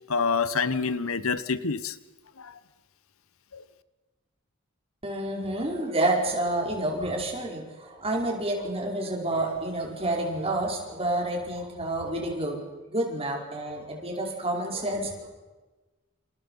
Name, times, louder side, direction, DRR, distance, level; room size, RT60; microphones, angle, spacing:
voice 1, 0.1-2.0 2.4-2.6 3.5-3.6, left 5 dB, 80° left, 15 dB, 1.1 m, -27 dB
voice 2, 5.0-12.6 12.9-15.3, right 1 dB, 25° right, 0 dB, 5.1 m, -29 dB
29.0 x 27.5 x 5.7 m, 1.2 s
head